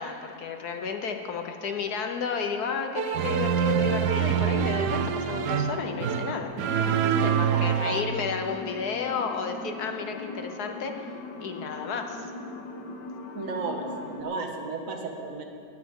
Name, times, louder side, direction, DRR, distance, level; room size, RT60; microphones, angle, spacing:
voice 1, 0.0-6.5 7.0-11.1 11.4-12.3, left 5 dB, 70° left, 4 dB, 1.4 m, -32 dB
sound 1, 3.0-8.0, right 8 dB, 75° right, 1.2 m, -25 dB
sound 2, 5.2-14.2, left 2 dB, 85° left, 1.7 m, -40 dB
voice 2, 13.3-15.4, right 3 dB, 55° right, 2 dB, 1.8 m, -34 dB
19.5 x 15.5 x 3.7 m, 2.4 s
omnidirectional pair, 1.8 m